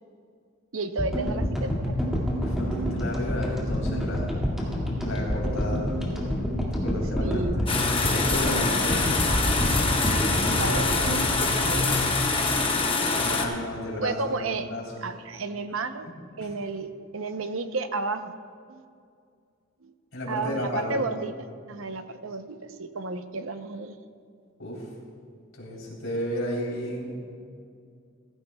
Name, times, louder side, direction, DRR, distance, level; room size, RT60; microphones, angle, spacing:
voice 1, 0.7-2.0 7.2-7.6 10.3-12.0 14.0-14.7 15.0-16.1 16.4-18.3 18.7-18.8 19.8-19.9 20.3-21.4 21.7-23.9, right 3 dB, 75° right, 9 dB, 0.7 m, -32 dB
sound 1, 1.0-13.3, equal, ahead, 1.9 m, -28 dB
voice 2, 2.4-4.4 4.9-5.9 6.7-9.0 13.1-14.8 16.4-16.5 20.1-21.0 24.6-24.9 25.6-27.2, left 1 dB, 70° left, -3 dB, 3.5 m, -33 dB
sound 2, 7.7-13.4, left 3 dB, 25° left, 1.0 m, -25 dB
17.0 x 14.5 x 2.3 m, 2.3 s
head